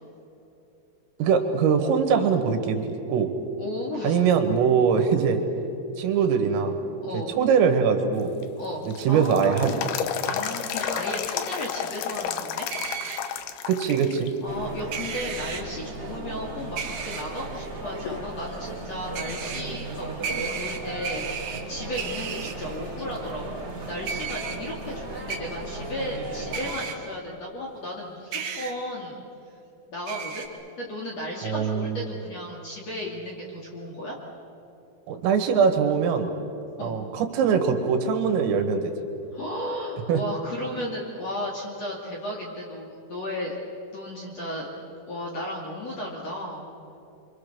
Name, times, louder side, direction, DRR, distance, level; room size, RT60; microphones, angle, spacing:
voice 1, 1.2-3.3 4.0-5.4 6.0-6.8 7.1-8.3 8.9-9.7 13.7-14.3 31.4-32.1 35.1-36.3 36.8-38.9 40.1-40.2, right 6 dB, 85° right, 5 dB, 4.3 m, -22 dB
voice 2, 3.6-4.2 7.0-7.3 8.6-10.0 10.2-12.7 14.4-23.6 23.9-29.2 29.9-30.5 30.8-34.2 36.8-37.0 39.3-43.5 43.9-44.7 45.1-46.7, left 1 dB, 40° left, -2 dB, 2.7 m, -34 dB
sound 1, 8.2-14.3 14.7-14.8 15.5-16.0 16.5-16.6 17.1-18.3 18.7-18.8 22.1-22.2 25.2-25.3, left 9 dB, 85° left, 2.2 m, -32 dB
sound 2, 12.7-13.2 14.9-15.6 16.8-17.2 19.1-19.6 20.2-21.6 22.0-22.5 24.1-24.6 25.3-25.4 26.5-26.9 28.3-28.7 30.1-30.5, right 7 dB, 60° right, 2.9 m, -33 dB
sound 3, 14.5-26.8, right 2 dB, 20° right, 1.9 m, -36 dB
26.0 x 25.0 x 6.8 m, 2.7 s
omnidirectional pair, 5.9 m